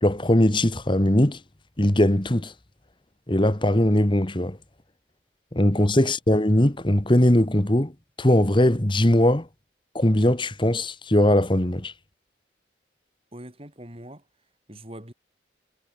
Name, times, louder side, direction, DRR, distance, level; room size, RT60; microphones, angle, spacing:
voice 1, 0.0-1.4 1.8-2.5 3.3-4.6 5.5-7.9 8.2-9.5 9.9-11.9, left 1 dB, 25° left, 1.7 m, -20 dB
voice 2, 13.3-14.2 14.7-15.1, right 1 dB, 30° right, 5.5 m, -42 dB
head